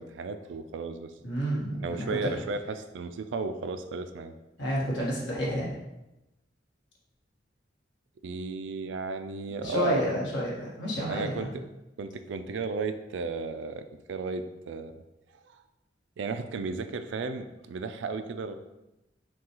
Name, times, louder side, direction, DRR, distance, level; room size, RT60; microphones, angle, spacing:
voice 1, 0.0-1.1 1.8-4.3 8.2-10.0 11.1-11.6 12.0-15.0 16.2-18.5, right 4 dB, 80° right, 9 dB, 0.3 m, -34 dB
voice 2, 1.2-2.0 4.6-5.7 9.6-11.5, equal, 75° left, -5 dB, 1.5 m, -30 dB
6.0 x 2.3 x 2.9 m, 0.96 s
head